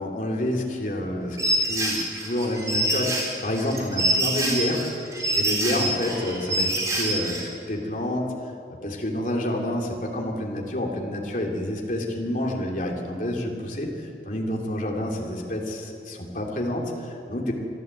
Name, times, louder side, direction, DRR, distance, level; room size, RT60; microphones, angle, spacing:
voice 1, 0.0-4.8 5.3-8.3 8.8-13.9 14.2-17.5, left 1 dB, 45° left, 0 dB, 2.9 m, -28 dB
sound 1, 1.4-7.4, right 1 dB, 20° right, 4.0 m, -25 dB
24.5 x 13.0 x 8.1 m, 2.5 s
head